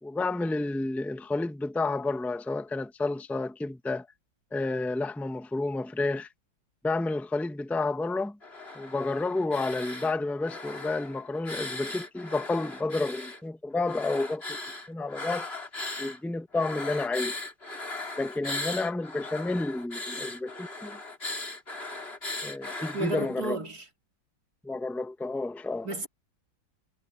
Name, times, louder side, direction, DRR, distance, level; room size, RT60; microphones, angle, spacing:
voice 1, 0.0-4.1 4.5-6.3 6.8-8.4 8.7-14.6 14.9-15.5 16.0-17.4 18.2-21.0 22.4-23.6 24.6-25.9, left 2 dB, ahead, 1.1 m, -30 dB
sound 1, 8.4-10.1 10.4-13.4 13.8-16.2 16.5-23.4, left 2 dB, 30° left, 4.4 m, -38 dB
voice 2, 22.9-23.8 25.8-26.1, right 2 dB, 50° right, 4.0 m, -32 dB
omnidirectional pair, 2.2 m